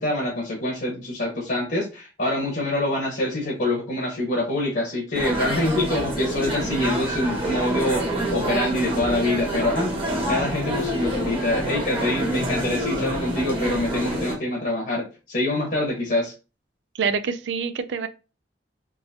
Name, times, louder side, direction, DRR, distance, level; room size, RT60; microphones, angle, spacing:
voice 1, 0.0-8.0 8.3-9.9 10.3-16.3, left 1 dB, 60° left, 1.2 m, -25 dB
sound 1, 5.1-14.3, right 1 dB, 30° right, 1.2 m, -27 dB
voice 2, 16.9-18.1, right 6 dB, 75° right, 0.4 m, -26 dB
3.7 x 2.8 x 2.8 m
head